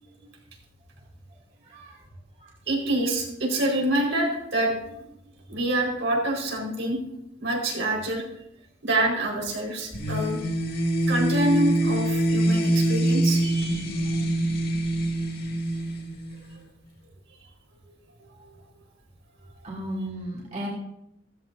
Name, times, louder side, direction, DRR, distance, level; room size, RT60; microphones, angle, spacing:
voice 1, 1.6-2.0 2.4-2.5 19.6-20.7, right 1 dB, 40° right, -5 dB, 2.7 m, -35 dB
voice 2, 2.7-5.0 5.5-7.0 7.4-8.2 8.8-10.4 11.1-14.0 17.4-17.5 18.3-18.4, right 1 dB, 80° right, -1 dB, 4.7 m, -26 dB
sound 1, 9.9-16.6, right 1 dB, 55° left, 2.3 m, -25 dB
15.0 x 15.0 x 2.7 m, 0.81 s
head